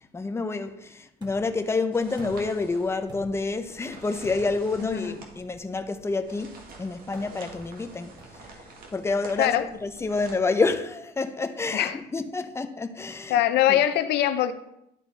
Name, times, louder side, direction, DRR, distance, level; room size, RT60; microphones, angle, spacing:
voice 1, 0.1-8.1 8.9-9.5 9.8-13.4 13.7-13.8, left 3 dB, 15° left, 0.6 m, -28 dB
sound 1, 1.2-1.6 2.2-2.6 3.1-3.5 4.2-4.7 5.4-5.6 7.1-7.5 8.2-8.5 9.2-9.4 10.1-10.5, right 1 dB, 25° right, 1.7 m, -47 dB
sound 2, 1.9-10.3, right 3 dB, 60° right, 1.7 m, -48 dB
voice 2, 13.3-14.5, left 12 dB, 80° left, 0.6 m, -22 dB
11.5 x 4.0 x 4.1 m
cardioid pair, 110°, 17 cm